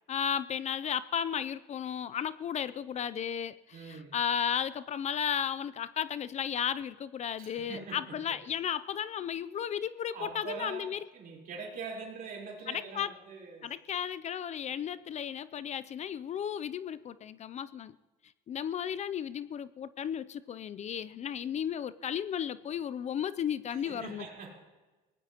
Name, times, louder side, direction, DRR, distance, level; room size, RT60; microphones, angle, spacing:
voice 1, 0.1-11.0 12.7-13.1 13.6-18.0 18.5-24.2, left 8 dB, 40° left, 16 dB, 0.4 m, -34 dB
voice 2, 3.7-4.1 7.4-8.4 10.1-13.7 23.7-24.5, right 5 dB, 60° right, -1 dB, 4.0 m, -43 dB
23.0 x 18.5 x 2.9 m, 1.2 s
cardioid pair, 110°, 17 cm